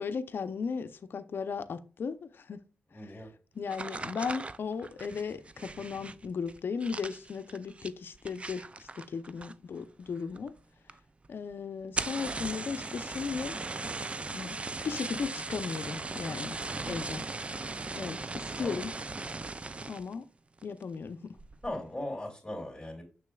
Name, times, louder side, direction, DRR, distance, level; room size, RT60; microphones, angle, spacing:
voice 1, 0.0-2.6 2.9-3.2 3.5-10.5 11.3-13.6 14.3-16.6 16.9-17.2 17.9-18.9 19.9-20.3 20.6-21.4, left 5 dB, 65° left, 0.6 m, -36 dB
voice 2, 2.9-3.3 16.8-17.0 18.6-18.8 21.6-23.0, left 1 dB, 10° left, 2.8 m, -39 dB
sound 1, 3.7-9.8 10.1-10.6 10.9-11.0 11.2-11.3 11.8-20.1 20.6-21.0 21.4-21.7, right 3 dB, 30° right, 0.4 m, -38 dB
6.9 x 6.4 x 2.3 m
cardioid pair, 55°, 4 cm